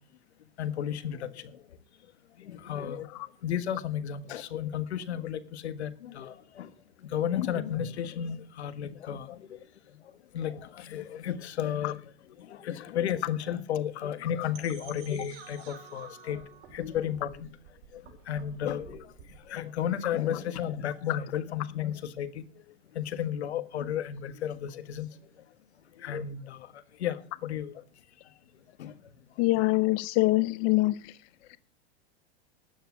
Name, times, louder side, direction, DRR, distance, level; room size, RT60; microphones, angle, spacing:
voice 1, 0.6-1.6 2.4-3.1 3.4-6.7 7.0-9.6 10.3-16.4 16.7-17.5 17.9-19.1 19.5-22.4 22.9-25.1 26.0-27.7 28.8-28.9 29.5-29.6, left 9 dB, 90° left, 1.5 m, -33 dB
sound 1, 14.5-19.5, right 7 dB, 60° right, 4.7 m, -50 dB
voice 2, 29.4-30.9, left 20 dB, 45° left, 0.6 m, -24 dB
12.5 x 9.3 x 6.2 m
hypercardioid pair, 120°, 32 cm